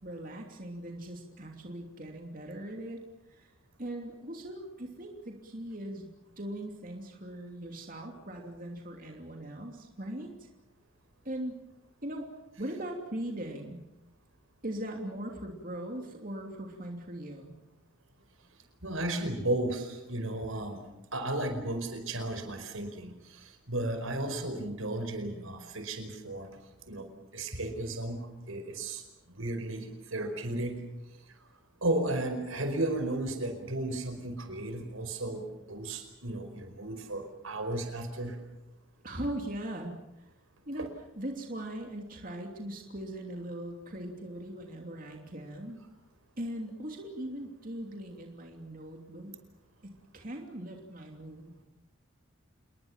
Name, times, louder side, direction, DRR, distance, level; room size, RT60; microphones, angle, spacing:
voice 1, 0.0-3.0 3.3-3.5 3.8-6.1 6.4-10.5 11.2-11.6 12.0-12.3 12.6-13.8 14.6-17.5 39.0-40.2 40.7-40.9 41.2-45.8 46.4-49.4 49.8-51.5, right 1 dB, 40° right, 2 dB, 3.0 m, -40 dB
voice 2, 18.8-20.8 21.1-26.5 26.9-27.1 27.3-29.0 29.4-29.9 30.1-30.8 31.8-38.4 40.8-40.9, right 1 dB, 80° right, 7 dB, 4.9 m, -34 dB
28.5 x 21.0 x 7.4 m, 0.95 s
head